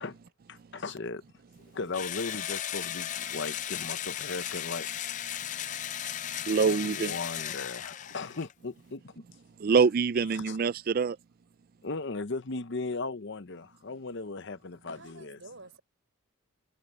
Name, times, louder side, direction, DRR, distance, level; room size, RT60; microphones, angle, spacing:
voice 1, 0.5-1.2 1.7-4.9 6.6-9.2 10.4-10.6 11.8-15.4, left 3 dB, 55° left, 0.8 m, -37 dB
Engine / Drill, 1.9-8.5, left 11 dB, 35° left, 0.4 m, -36 dB
voice 2, 6.5-7.1 9.6-11.2, right 5 dB, 40° right, 0.3 m, -25 dB
voice 3, 14.9-15.8, right 3 dB, 60° right, 6.5 m, -50 dB
head